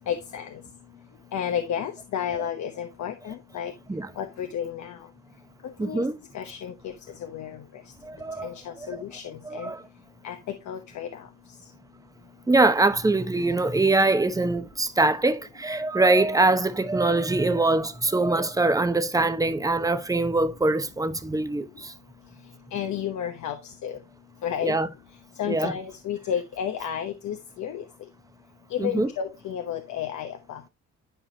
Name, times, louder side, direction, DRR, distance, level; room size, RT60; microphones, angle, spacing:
voice 1, 0.1-0.6 1.3-3.7 4.2-5.0 5.8-6.1 6.3-6.9 7.2-7.6 8.4-9.7 10.2-10.4 10.7-11.2 22.7-23.9 24.4-24.7 25.4-27.8 28.7-30.7, left 9 dB, 70° left, 1.1 m, -32 dB
voice 2, 5.8-6.1 8.0-8.5 8.8-8.9 9.4-9.8 12.5-21.9 24.6-24.9 25.5-25.7 28.8-29.1, right 2 dB, 10° right, 0.9 m, -23 dB
11.5 x 4.8 x 2.8 m
cardioid pair, 90°, 30 cm